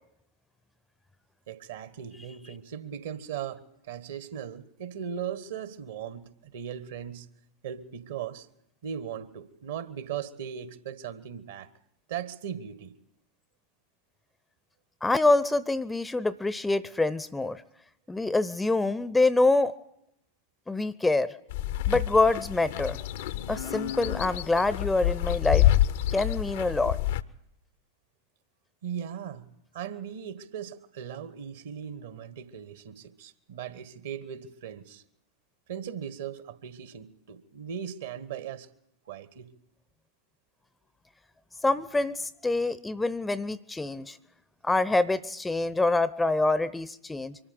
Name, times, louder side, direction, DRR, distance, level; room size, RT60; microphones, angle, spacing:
voice 1, 1.5-7.3 7.6-8.5 8.8-11.7 12.1-12.9 28.8-35.0 35.7-38.7 39.0-39.5, right 8 dB, 60° right, 1.5 m, -38 dB
voice 2, 15.0-17.6 18.1-19.7 20.7-21.3 21.9-23.0 23.5-25.7 26.1-27.0 41.6-44.2 44.6-47.4, left 2 dB, 10° left, 0.7 m, -25 dB
sound 1, 21.5-27.2, left 13 dB, 55° left, 0.8 m, -27 dB
24.0 x 13.5 x 8.5 m
figure-of-eight pair, 90°, 0 cm